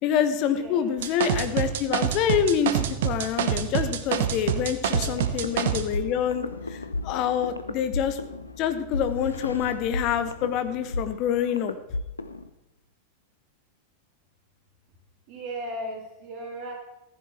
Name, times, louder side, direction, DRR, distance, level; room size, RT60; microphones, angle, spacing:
voice 1, 0.0-8.2 8.6-11.8, left 8 dB, 40° left, 10 dB, 1.2 m, -26 dB
voice 2, 0.5-1.0 4.8-5.5 15.3-16.7, right 1 dB, 40° right, 1 dB, 3.5 m, -38 dB
sound 1, 1.0-5.8, right 9 dB, 55° right, 1.0 m, -26 dB
Bass guitar, 2.7-9.0, left 5 dB, 15° right, 3.5 m, -48 dB
sound 2, 4.9-12.5, left 2 dB, 80° left, 0.7 m, -34 dB
14.5 x 9.8 x 4.3 m, 0.95 s
figure-of-eight pair, 90°, 0 cm